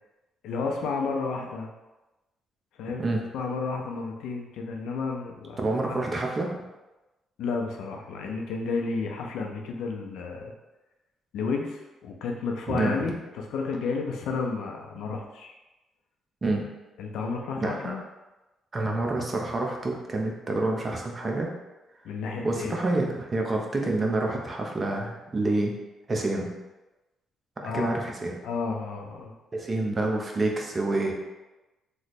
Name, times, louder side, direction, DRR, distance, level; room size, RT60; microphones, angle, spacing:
voice 1, 0.4-1.7 2.8-3.1 3.3-5.6 5.9-6.0 7.4-10.5 11.3-15.5 17.0-18.0 22.0-22.9 27.6-28.0 28.4-29.3, left 4 dB, 85° left, 2 dB, 0.5 m, -32 dB
voice 2, 5.6-6.5 12.7-13.1 16.4-16.6 17.6-18.0 18.7-21.5 22.4-25.7 26.1-26.5 27.6-28.3 29.5-31.1, right 2 dB, 30° right, 1 dB, 0.7 m, -27 dB
3.1 x 2.1 x 4.1 m, 1.1 s
cardioid pair, 90°, 0 cm